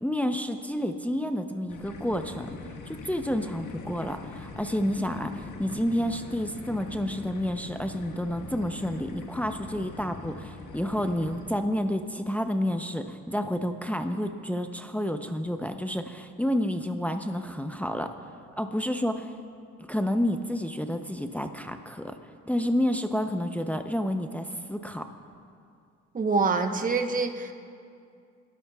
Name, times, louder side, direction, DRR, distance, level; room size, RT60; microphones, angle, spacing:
voice 1, 0.0-2.5 2.9-18.1 18.6-19.3 19.9-22.2 22.5-25.1, equal, 5° left, 6 dB, 0.7 m, -29 dB
sound 1, 1.7-11.5, left 3 dB, 70° left, 1.6 m, -42 dB
voice 2, 26.1-27.5, right 4 dB, 25° right, 5 dB, 1.0 m, -25 dB
28.5 x 13.0 x 2.4 m, 2.3 s
cardioid pair, 90°, 30 cm